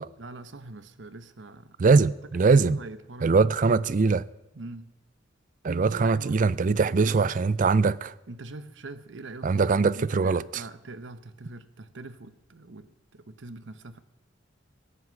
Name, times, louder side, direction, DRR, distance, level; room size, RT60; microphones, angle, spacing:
voice 1, 0.2-1.8 2.5-3.6 4.5-4.9 5.6-7.2 8.3-14.0, right 2 dB, 70° right, 0.9 m, -43 dB
voice 2, 1.8-2.8 3.2-4.2 5.6-8.1 9.4-10.6, right 4 dB, 45° right, 0.4 m, -22 dB
16.0 x 9.5 x 7.7 m
head